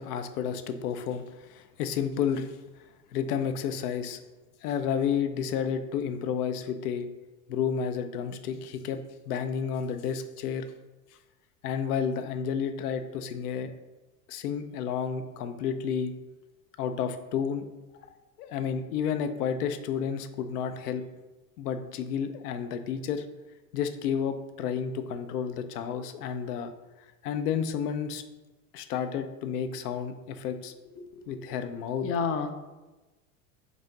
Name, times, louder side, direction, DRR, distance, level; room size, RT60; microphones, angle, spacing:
voice 1, 0.0-2.5 3.1-4.2 4.6-7.1 7.5-9.0 9.3-10.7 11.6-13.7 14.3-16.1 16.8-17.7 18.4-21.0 21.6-23.2 23.7-26.7 27.2-28.2 28.7-30.7 31.3-32.1, left 7 dB, 80° left, 9 dB, 0.6 m, -31 dB
voice 2, 31.0-31.4 32.0-32.5, left 5 dB, 30° left, 8 dB, 0.4 m, -31 dB
4.9 x 2.6 x 3.7 m, 1.1 s
hypercardioid pair, 95°, 46 cm